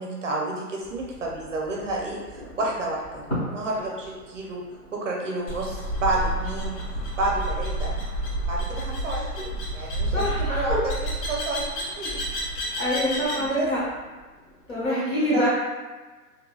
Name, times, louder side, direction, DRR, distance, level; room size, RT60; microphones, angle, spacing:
voice 1, 0.0-4.6 4.9-6.8 7.2-8.0 8.5-12.2 13.3-13.7 14.9-15.5, right 2 dB, 55° right, -2 dB, 0.5 m, -30 dB
sound 1, 0.8-14.9, equal, 25° left, 1.2 m, -42 dB
sound 2, 5.5-13.5, right 1 dB, 80° left, 1.3 m, -30 dB
voice 2, 10.1-10.8 12.8-13.8 14.7-15.5, left 1 dB, 55° left, -8 dB, 1.3 m, -25 dB
2.7 x 2.6 x 2.3 m, 1.3 s
hypercardioid pair, 175°, 47 cm